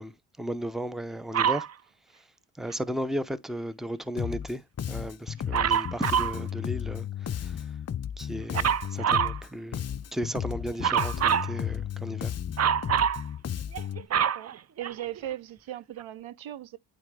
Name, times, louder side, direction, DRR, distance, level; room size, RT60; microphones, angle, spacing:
voice 1, 0.0-1.7 2.1-2.2 2.6-7.7 8.2-12.3, right 1 dB, ahead, 0.7 m, -35 dB
Dog, 1.3-1.7 5.5-6.4 8.5-9.4 10.8-11.5 12.6-13.2 13.7-15.3 16.0-16.1, right 8 dB, 35° right, 0.4 m, -25 dB
Bass guitar, 4.2-4.5 4.8-9.5 9.7-14.1, left 9 dB, 35° left, 0.5 m, -34 dB
voice 2, 14.2-16.8, right 13 dB, 75° right, 0.7 m, -38 dB
8.9 x 3.3 x 3.2 m
cardioid pair, 70°, 47 cm